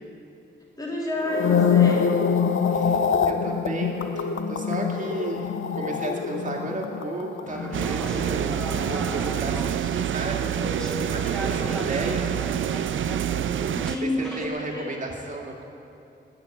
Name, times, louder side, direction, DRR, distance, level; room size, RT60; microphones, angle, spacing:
voice 1, 0.8-2.2 13.7-14.9, left 1 dB, 20° left, -4 dB, 3.0 m, -29 dB
sound 1, 1.2-9.6 9.8-10.2, left 6 dB, 80° left, 0.7 m, -25 dB
voice 2, 2.7-12.3 14.0-15.6, right 2 dB, 40° right, 0 dB, 2.2 m, -33 dB
sound 2, 7.5-14.5, equal, 5° left, 1.3 m, -37 dB
sound 3, 7.7-14.0, right 10 dB, 75° right, 0.4 m, -27 dB
20.5 x 7.0 x 9.4 m, 2.8 s
wide cardioid pair, 155°, 20 cm